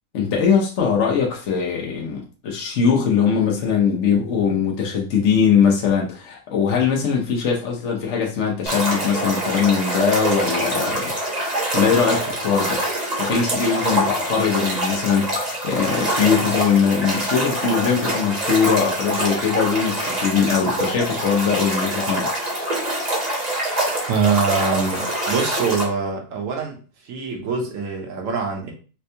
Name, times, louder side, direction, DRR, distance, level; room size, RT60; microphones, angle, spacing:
voice 1, 0.1-11.1 11.7-12.8 13.2-22.3, left 6 dB, 55° left, 0.9 m, -21 dB
sound 1, 8.7-25.8, right 1 dB, 30° right, 0.9 m, -25 dB
voice 2, 24.1-28.7, right 5 dB, 60° right, 1.1 m, -24 dB
4.3 x 2.2 x 2.7 m
omnidirectional pair, 1.7 m